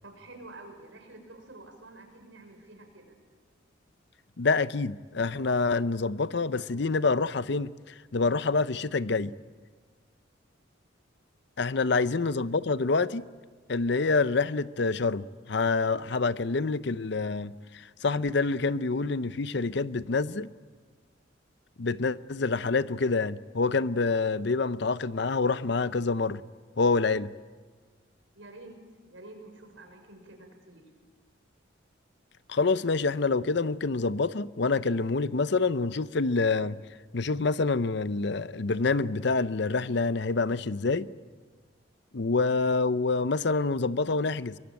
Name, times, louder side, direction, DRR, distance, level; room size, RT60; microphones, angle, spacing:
voice 1, 0.0-3.2 28.3-28.8 29.1-30.9, right 2 dB, 80° right, 5.8 m, -49 dB
voice 2, 4.4-9.3 11.6-13.3 13.7-20.5 21.8-26.4 26.8-27.3 32.5-36.8 37.1-41.1 42.1-44.6, left 3 dB, 60° left, 0.7 m, -27 dB
23.5 x 22.5 x 8.9 m
head